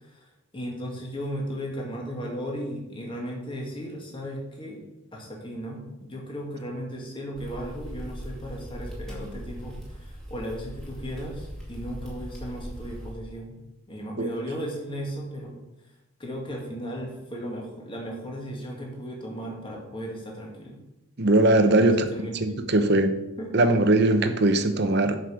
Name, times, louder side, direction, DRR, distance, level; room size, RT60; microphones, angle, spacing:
voice 1, 0.5-4.8 5.1-13.6 13.9-15.6 16.2-20.8 21.7-22.4 22.7-23.0 23.4-23.5, equal, 25° left, -1 dB, 1.9 m, -36 dB
sound 1, 7.3-13.1, equal, ahead, 2.1 m, -39 dB
voice 2, 21.2-22.0 22.4-23.1 23.5-25.2, right 2 dB, 50° right, 9 dB, 0.8 m, -20 dB
7.8 x 5.5 x 6.3 m, 0.94 s
head